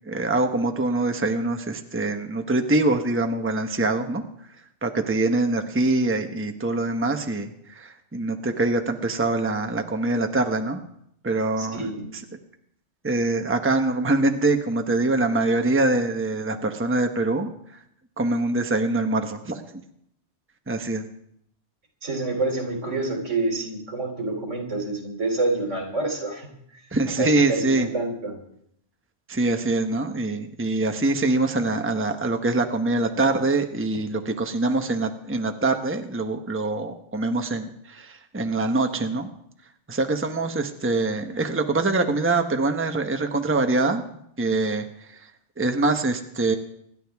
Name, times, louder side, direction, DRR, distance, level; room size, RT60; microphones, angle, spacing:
voice 1, 0.1-4.2 4.8-10.8 11.2-11.9 13.0-17.5 18.2-19.6 20.7-21.1 26.9-27.9 29.3-39.3 39.9-44.0 44.4-44.9 45.6-46.5, right 2 dB, 10° right, 5 dB, 1.0 m, -24 dB
voice 2, 11.6-12.1 22.0-26.5 27.2-28.4, right 2 dB, 85° right, 2 dB, 3.8 m, -27 dB
26.0 x 11.5 x 3.6 m, 0.72 s
omnidirectional pair, 1.2 m